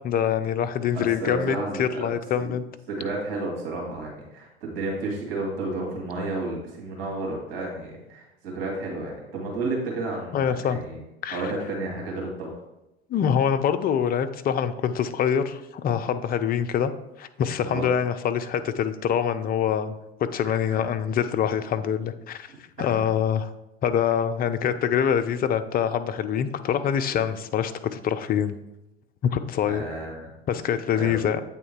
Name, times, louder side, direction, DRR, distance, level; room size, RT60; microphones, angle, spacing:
voice 1, 0.0-2.6 10.3-10.8 11.2-11.4 13.1-16.9 17.2-19.9 20.3-22.5 22.8-23.5 23.8-28.6 29.3-29.8 30.5-31.4, left 8 dB, 30° left, 9 dB, 0.5 m, -25 dB
voice 2, 0.9-2.5 2.9-11.0 11.3-12.5 17.6-17.9 20.4-20.8 22.5-23.0 29.6-30.3 30.9-31.2, right 2 dB, 65° right, -1 dB, 2.2 m, -32 dB
8.4 x 3.6 x 4.5 m, 0.92 s
hypercardioid pair, 75°, 30 cm